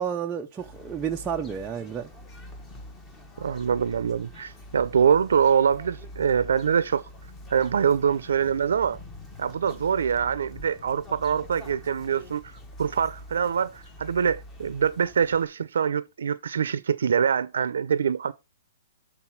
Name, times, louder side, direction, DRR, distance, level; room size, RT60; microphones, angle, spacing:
voice 1, 0.0-2.1, right 8 dB, 10° right, 0.4 m, -31 dB
sound 1, 0.6-15.5, left 1 dB, 10° left, 0.9 m, -45 dB
voice 2, 3.4-7.0 7.5-9.0 9.4-12.4 12.8-18.3, right 7 dB, 85° right, 0.6 m, -24 dB
7.8 x 3.9 x 5.8 m
hypercardioid pair, 175°, 0 cm